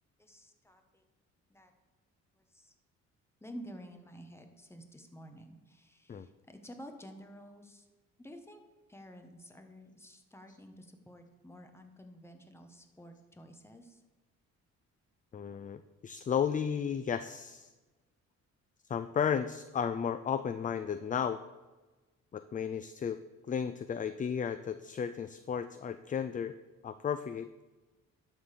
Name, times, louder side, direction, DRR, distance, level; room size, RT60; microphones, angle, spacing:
voice 1, 0.2-1.0 1.5-1.7 2.4-2.7 3.4-7.9 8.2-8.6 8.9-14.0, equal, 10° left, 5 dB, 1.2 m, -51 dB
voice 2, 15.3-17.7 18.9-21.4 22.3-23.2 23.5-26.6 26.8-27.5, left 7 dB, 25° left, 11 dB, 0.4 m, -34 dB
11.5 x 3.9 x 6.7 m, 1.2 s
cardioid pair, 90°, 30 cm